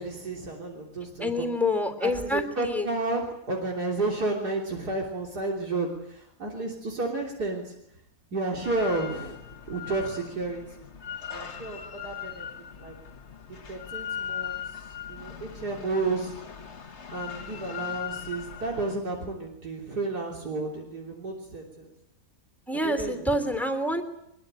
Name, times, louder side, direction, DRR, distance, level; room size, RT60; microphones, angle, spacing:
voice 1, 0.0-1.5 2.0-7.7 8.3-9.4 9.7-10.9 11.3-12.5 12.8-12.9 13.7-14.6 14.9-16.3 17.1-21.9 22.8-23.4, right 3 dB, 80° right, -1 dB, 3.9 m, -32 dB
voice 2, 1.2-2.9 22.7-24.0, left 1 dB, ahead, 7 dB, 3.1 m, -27 dB
Drill, 8.6-19.0, left 9 dB, 45° left, 1.6 m, -39 dB
23.5 x 22.0 x 9.0 m, 0.80 s
omnidirectional pair, 1.7 m